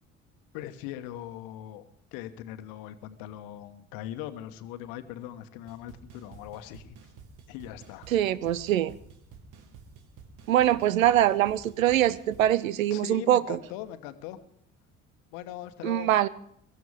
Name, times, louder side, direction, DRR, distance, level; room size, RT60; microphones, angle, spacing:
voice 1, 0.5-1.8 2.1-7.0 7.5-8.1 12.9-14.4 15.3-16.1, left 12 dB, 55° left, 10 dB, 1.3 m, -40 dB
sound 1, 5.7-12.5, right 5 dB, 50° right, 1.8 m, -51 dB
voice 2, 8.1-8.9 10.5-13.6 15.8-16.3, right 12 dB, 75° right, 20 dB, 0.7 m, -23 dB
23.5 x 13.5 x 3.6 m, 0.69 s
figure-of-eight pair, 60°, 41 cm